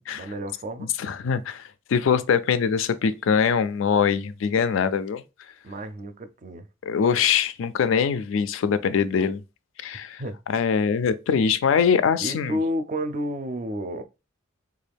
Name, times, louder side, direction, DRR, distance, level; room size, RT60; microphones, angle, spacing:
voice 1, 0.1-0.9 5.6-6.7 10.2-10.4 12.2-14.0, equal, 40° right, 0.4 m, -31 dB
voice 2, 0.8-5.2 6.9-9.4 9.8-10.2 10.5-12.6, left 6 dB, 75° left, 0.3 m, -23 dB
3.5 x 2.4 x 3.4 m
head